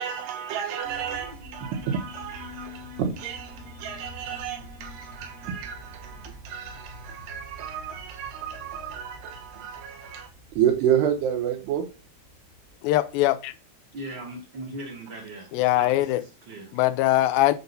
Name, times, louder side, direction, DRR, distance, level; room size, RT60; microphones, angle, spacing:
voice 1, 0.0-11.9, right 9 dB, 80° right, 3.2 m, -30 dB
sound 1, 0.8-13.7, left 1 dB, 60° left, 1.0 m, -46 dB
voice 2, 12.8-13.5 15.5-16.2 16.7-17.5, left 15 dB, 85° left, 2.1 m, -21 dB
voice 3, 13.9-16.7, right 1 dB, 50° right, 1.5 m, -39 dB
7.8 x 2.8 x 5.3 m
omnidirectional pair, 4.8 m